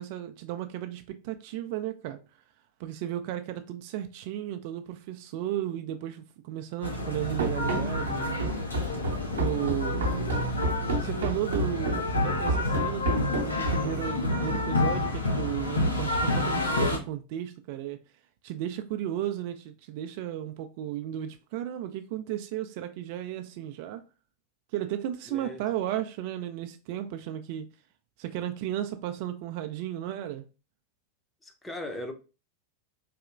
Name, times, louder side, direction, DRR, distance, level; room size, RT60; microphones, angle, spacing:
voice 1, 0.0-2.2 2.8-8.4 9.3-10.3 10.9-18.0 18.4-24.0 24.7-27.7 28.2-30.5, right 12 dB, 45° right, 0.3 m, -34 dB
sound 1, 6.8-17.0, left 2 dB, 80° left, 0.7 m, -29 dB
Run, 7.4-14.0, right 2 dB, 65° right, 0.8 m, -30 dB
voice 2, 25.3-25.6 31.4-32.1, left 1 dB, 10° left, 0.7 m, -38 dB
4.0 x 2.8 x 2.3 m
figure-of-eight pair, 90°, 0 cm